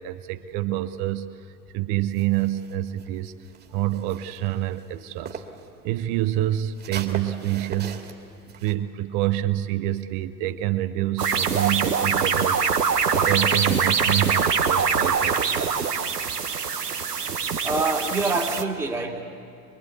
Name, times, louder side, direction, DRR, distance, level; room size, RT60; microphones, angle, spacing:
voice 1, 0.0-3.3 3.7-5.4 5.8-8.0 8.6-12.8 13.1-15.7, right 14 dB, 35° right, 11 dB, 0.9 m, -27 dB
sound 1, 2.1-5.7 6.0-8.7, right 6 dB, 20° right, 2.2 m, -40 dB
sound 2, 11.2-18.6, right 6 dB, 80° right, 1.3 m, -23 dB
voice 2, 17.6-19.2, right 3 dB, 5° right, -1 dB, 2.0 m, -25 dB
24.5 x 22.0 x 8.4 m, 2.5 s
figure-of-eight pair, 90°, 46 cm